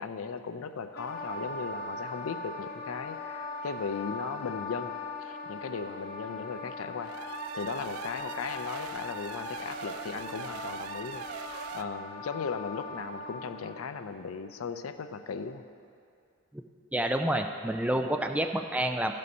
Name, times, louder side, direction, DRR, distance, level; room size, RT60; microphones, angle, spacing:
voice 1, 0.0-11.3 11.7-15.7, left 5 dB, 75° left, 9 dB, 0.5 m, -37 dB
Wind instrument woodwind instrument, 0.9-13.8, left 3 dB, 45° left, 1.0 m, -40 dB
sound 1, 7.0-11.8, right 7 dB, 90° right, 0.4 m, -42 dB
voice 2, 16.9-19.1, right 1 dB, 5° right, 5 dB, 0.3 m, -28 dB
13.0 x 5.3 x 5.4 m, 2.4 s
head